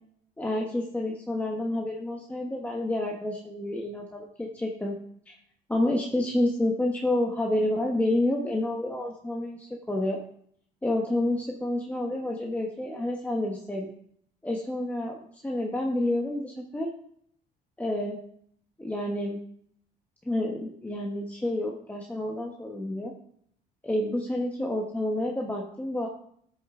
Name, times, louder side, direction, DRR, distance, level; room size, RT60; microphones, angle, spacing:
voice 1, 0.4-5.0 5.3-5.4 5.7-10.2 10.8-13.9 14.4-16.9 17.8-18.2 18.8-19.4 20.2-23.1 23.8-26.1, left 1 dB, 10° left, -1 dB, 1.2 m, -29 dB
13.0 x 6.6 x 3.7 m, 0.66 s
cardioid pair, 110°, 17 cm